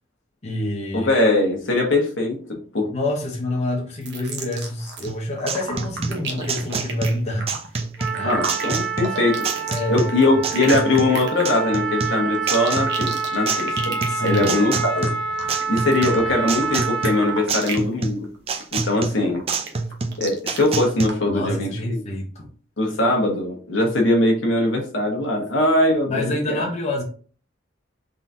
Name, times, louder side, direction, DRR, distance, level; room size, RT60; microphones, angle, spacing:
voice 1, 0.4-1.1 2.8-7.5 8.1-8.4 9.7-10.4 14.1-14.5 21.3-22.5 26.1-27.0, left 1 dB, 35° left, -1 dB, 0.9 m, -27 dB
voice 2, 0.9-2.9 8.2-9.5 9.9-15.1 15.7-18.3 18.7-19.4 20.2-22.0 22.8-26.6, left 2 dB, 70° left, 1 dB, 1.1 m, -21 dB
sound 1, 4.0-5.1 5.4-17.9 18.2-18.6 19.0-20.6 21.1-21.2, right 4 dB, 65° right, 1.0 m, -33 dB
sound 2, 5.1-21.1, right 4 dB, 30° right, 0.4 m, -28 dB
Trumpet, 8.0-17.5, right 5 dB, 5° left, 0.9 m, -27 dB
3.9 x 3.7 x 2.7 m, 0.41 s
head